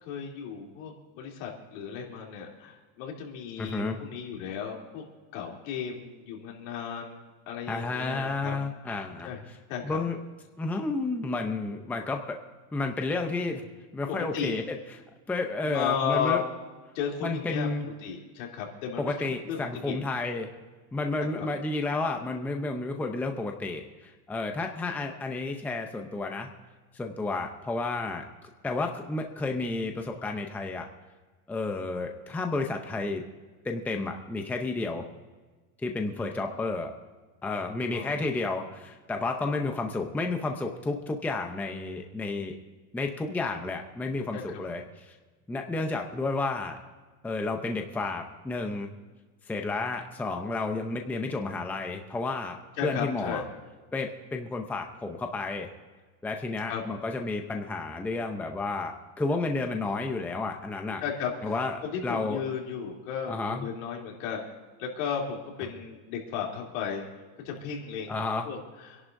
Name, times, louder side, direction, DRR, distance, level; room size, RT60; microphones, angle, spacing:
voice 1, 0.0-5.0 5.3-8.6 9.2-9.4 9.7-10.0 14.1-14.6 15.6-16.4 16.9-17.7 18.0-20.0 21.4-21.5 36.1-36.3 37.9-38.2 44.3-44.6 52.8-53.4 56.6-56.8 61.0-61.5 61.8-64.5 64.8-67.0 67.4-68.2 68.4-69.0, left 7 dB, 70° left, -1 dB, 3.2 m, -34 dB
voice 2, 3.6-4.0 7.7-9.3 9.8-10.2 10.6-12.4 12.7-13.6 13.9-14.8 15.3-16.4 17.2-17.9 19.0-20.5 20.9-26.5 26.9-28.2 28.6-30.9 31.5-33.2 33.6-35.1 35.8-36.9 37.4-42.6 42.9-45.1 45.5-46.8 47.2-48.9 49.5-52.6 52.8-53.4 53.9-55.7 56.2-61.0 61.4-62.4 63.3-63.7 68.1-68.5, left 3 dB, 5° left, 3 dB, 0.6 m, -31 dB
28.0 x 11.0 x 2.6 m, 1.3 s
supercardioid pair, 160°, 40 cm